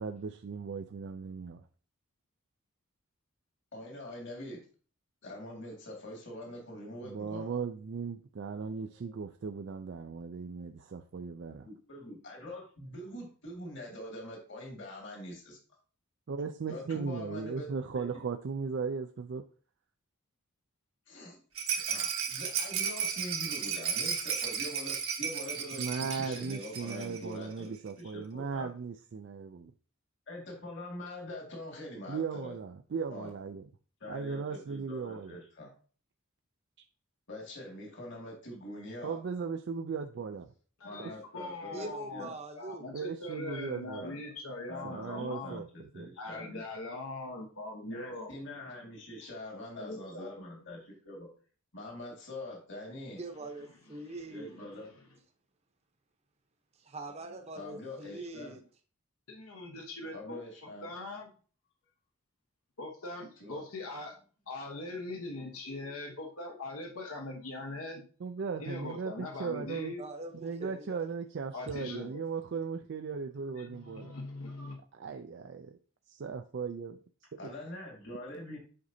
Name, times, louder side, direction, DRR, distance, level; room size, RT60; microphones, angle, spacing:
voice 1, 0.0-1.6 7.0-11.7 16.3-19.4 25.8-29.7 32.1-33.7 34.1-35.4 39.0-40.5 41.0-41.1 42.9-44.1 44.8-46.1 68.2-70.0 70.3-74.1 74.9-75.8 76.1-77.0 77.4-77.5, right 5 dB, 55° right, 0.4 m, -37 dB
voice 2, 3.7-4.6 5.2-7.6 11.6-15.6 16.7-17.7 17.9-18.1 21.1-21.4 21.7-27.7 28.0-28.7 30.3-32.6 33.1-33.3 34.0-35.7 37.3-39.2 40.8-42.3 44.0-44.2 44.7-46.6 47.8-51.3 51.7-53.2 54.3-54.9 57.5-58.5 60.1-60.9 63.4-63.6 77.4-78.6, left 1 dB, 55° left, 2.0 m, -44 dB
Rattle, 21.5-27.2 27.5-27.6 27.9-28.0, right 7 dB, 80° right, 1.3 m, -34 dB
voice 3, 40.8-45.5 46.2-48.3 49.7-50.4 53.9-54.2 54.6-54.9 59.3-60.4 60.8-61.3 62.8-64.1 64.5-68.0 68.6-70.0 71.5-72.2 73.6-74.8, left 2 dB, 80° left, 1.1 m, -41 dB
voice 4, 41.7-42.9 53.2-54.6 56.8-58.6 70.0-71.0, right 2 dB, 30° right, 0.8 m, -43 dB
7.7 x 5.3 x 2.7 m
head